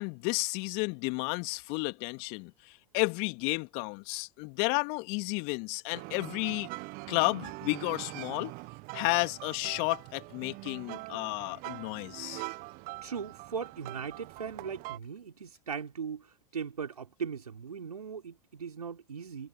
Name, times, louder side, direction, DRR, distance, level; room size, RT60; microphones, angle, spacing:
voice 1, 0.0-6.7 7.1-8.5 8.9-12.5, left 32 dB, 55° left, 2.3 m, -32 dB
sound 1, 5.9-15.0, right 25 dB, 50° right, 1.5 m, -43 dB
voice 2, 13.0-16.3 16.5-19.5, right 6 dB, 85° right, 4.7 m, -39 dB
figure-of-eight pair, 80°, 19 cm